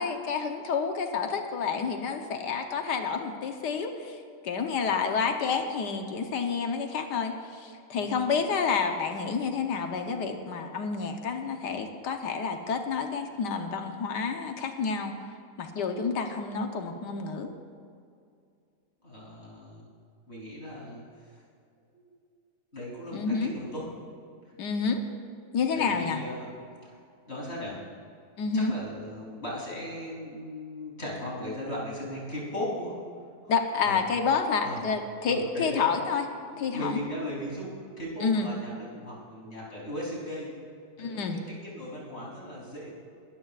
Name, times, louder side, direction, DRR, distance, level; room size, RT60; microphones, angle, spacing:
voice 1, 0.0-15.1 15.6-17.5 23.1-23.5 24.6-25.0 25.5-26.2 28.4-28.7 33.5-36.3 36.6-37.0 38.2-38.5 41.0-41.4, left 5 dB, 75° left, 5 dB, 1.5 m, -29 dB
voice 2, 7.9-8.3 19.0-19.8 20.3-21.4 21.9-22.1 22.7-23.8 25.7-26.5 26.8-26.9 27.3-27.7 28.5-33.0 33.4-33.5 33.8-34.0 34.6-34.8 35.2-35.8 36.4-40.5 41.0-42.9, left 1 dB, 40° left, -5 dB, 3.7 m, -37 dB
21.5 x 13.5 x 2.4 m, 2.4 s
omnidirectional pair, 1.8 m